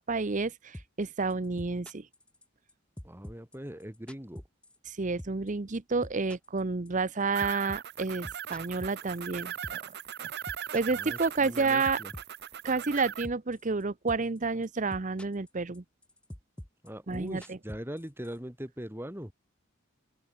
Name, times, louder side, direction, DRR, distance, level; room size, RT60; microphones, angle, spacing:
voice 1, 0.0-2.1 4.9-9.8 10.7-12.0 12.6-15.8 17.1-17.6, right 4 dB, 40° right, 0.8 m, -30 dB
sound 1, 0.7-1.0 1.3-2.7 3.0-4.9 5.2-5.5 5.7-9.9 10.2-11.6 11.8-13.8 14.1-14.4 14.6-15.5 15.7-18.4, equal, 5° left, 0.6 m, -45 dB
voice 2, 3.0-4.4 10.9-12.1 16.8-19.3, equal, 10° right, 3.0 m, -41 dB
sound 2, 7.3-13.3, right 9 dB, 55° right, 1.1 m, -39 dB
open air
head